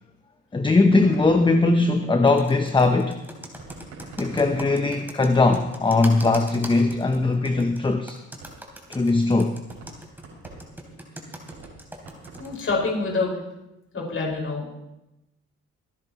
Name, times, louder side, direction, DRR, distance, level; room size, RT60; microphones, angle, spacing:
voice 1, 0.5-3.2 4.2-8.2 8.9-9.6, left 3 dB, 15° left, 6 dB, 0.8 m, -20 dB
sound 1, 0.9-2.6 3.6-6.0 6.3-6.4 6.8-8.9 9.2-9.3 9.7-13.3, right 3 dB, 80° right, 6.2 m, -45 dB
Computer keyboard, 2.3-12.5, right 1 dB, 5° right, 3.2 m, -40 dB
voice 2, 12.4-13.3 13.9-14.8, left 3 dB, 45° left, -2 dB, 5.5 m, -26 dB
27.0 x 10.5 x 3.1 m, 0.92 s
cardioid pair, 90°, 30 cm